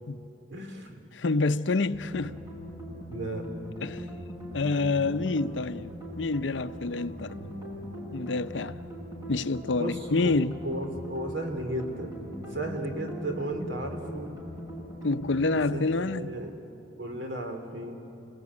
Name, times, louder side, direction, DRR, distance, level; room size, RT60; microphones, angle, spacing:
voice 1, 0.5-0.9 3.1-3.4 9.7-12.2 12.5-14.3 15.7-16.5 17.0-18.0, right 1 dB, 80° right, 3.3 m, -34 dB
voice 2, 1.1-2.4 3.8-4.0 4.5-7.4 8.1-8.8 9.3-10.6 15.0-16.3, left 3 dB, 80° left, 0.7 m, -28 dB
sound 1, 1.9-15.7, equal, 20° right, 7.6 m, -40 dB
28.5 x 20.0 x 9.6 m
head